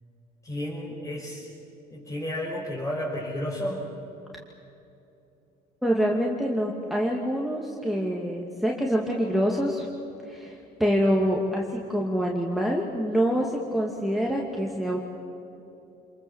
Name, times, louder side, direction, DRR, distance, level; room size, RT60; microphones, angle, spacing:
voice 1, 0.4-1.5 1.9-3.8, left 1 dB, 20° left, -5 dB, 5.4 m, -32 dB
voice 2, 5.8-9.9 10.3-11.6 11.9-15.0, equal, ahead, -2 dB, 2.5 m, -26 dB
28.0 x 22.0 x 7.4 m, 2.9 s
cardioid pair, 110°, 17 cm